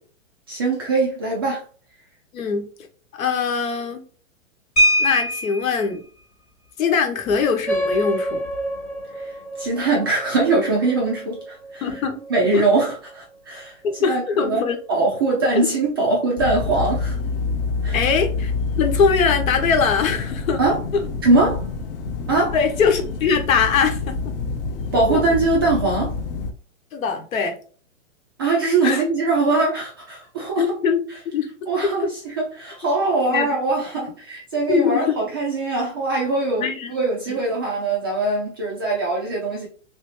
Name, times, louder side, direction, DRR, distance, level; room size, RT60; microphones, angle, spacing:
voice 1, 0.5-1.6 9.2-9.3 9.6-11.9 12.3-13.7 14.1-14.6 14.9-17.2 17.8-18.0 20.6-20.8 21.2-21.7 22.3-22.6 24.9-26.2 28.4-30.7 31.7-39.7, right 3 dB, 20° right, 0.3 m, -22 dB
voice 2, 2.3-2.7 3.2-4.0 5.0-6.0 6.8-8.4 11.8-12.2 12.5-12.7 13.8-14.8 17.9-18.5 18.8-20.6 20.9-21.0 22.5-24.3 25.1-25.2 26.9-27.6 28.8-29.0 30.6-31.0 31.3-31.5 33.3-33.5 34.7-35.2 36.6-36.9 37.3-37.4, left 5 dB, 80° left, 1.1 m, -21 dB
sound 1, 4.8-5.8 7.3-7.4 7.7-7.9 8.3-8.6, equal, 20° left, 1.1 m, -20 dB
sound 2, 7.7-12.6, equal, 5° left, 0.7 m, -29 dB
sound 3, 16.4-26.5, left 4 dB, 45° left, 0.6 m, -27 dB
3.2 x 2.7 x 3.1 m
hypercardioid pair, 145°, 40 cm